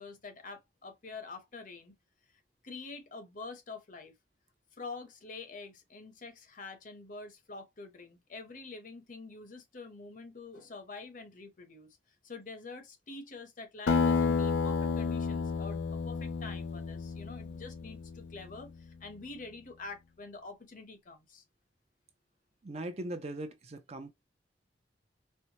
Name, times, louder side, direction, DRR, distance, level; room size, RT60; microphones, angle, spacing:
voice 1, 0.0-1.9 2.6-4.1 4.7-12.0 12.2-21.4, left 3 dB, 45° left, 0.8 m, -46 dB
Acoustic guitar, 13.9-18.7, left 5 dB, 90° left, 0.5 m, -31 dB
voice 2, 22.6-24.1, right 1 dB, 35° right, 0.5 m, -39 dB
4.4 x 2.1 x 2.8 m
head